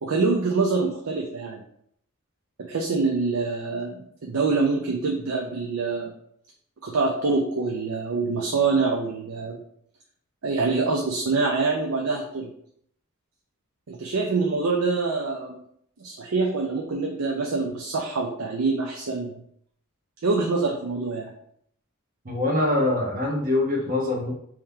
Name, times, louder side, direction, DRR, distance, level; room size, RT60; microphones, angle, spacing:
voice 1, 0.0-1.6 2.6-6.1 6.8-9.6 10.4-12.5 13.9-15.6 16.0-19.3 20.2-21.3, right 3 dB, 75° right, 0 dB, 0.6 m, -25 dB
voice 2, 22.2-24.3, left 2 dB, 40° right, -2 dB, 1.2 m, -24 dB
3.7 x 3.1 x 4.3 m, 0.68 s
head